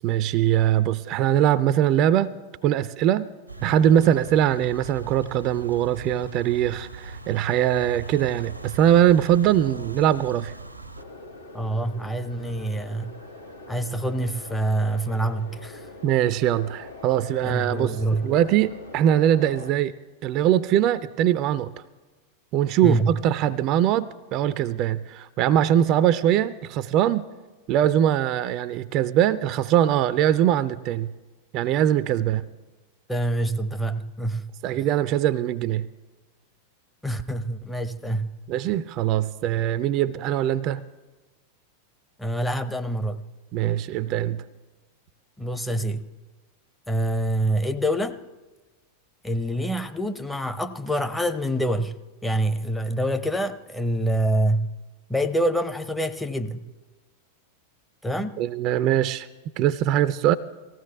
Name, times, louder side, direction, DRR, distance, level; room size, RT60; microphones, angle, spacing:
voice 1, 0.0-2.3 2.6-3.3 3.6-10.5 16.0-18.0 18.2-19.9 20.2-21.7 22.5-27.3 27.7-31.1 31.5-32.4 34.6-35.9 38.5-40.8 43.5-44.4 58.4-59.3 59.6-60.4, right 11 dB, 40° right, 15 dB, 0.4 m, -22 dB
sound 1, 3.5-11.0, right 3 dB, 90° right, 0.8 m, -39 dB
sound 2, 11.0-19.7, left 2 dB, 85° left, 1.4 m, -43 dB
voice 2, 11.5-13.1 13.7-15.9 17.4-18.3 22.8-23.1 33.1-34.4 37.0-38.3 42.2-43.2 45.4-46.1 46.9-48.2 49.2-52.0 52.2-54.8 55.1-56.7 58.0-58.4, right 1 dB, 5° left, 9 dB, 0.7 m, -26 dB
18.5 x 15.5 x 3.5 m, 1.2 s
figure-of-eight pair, 90°, 0 cm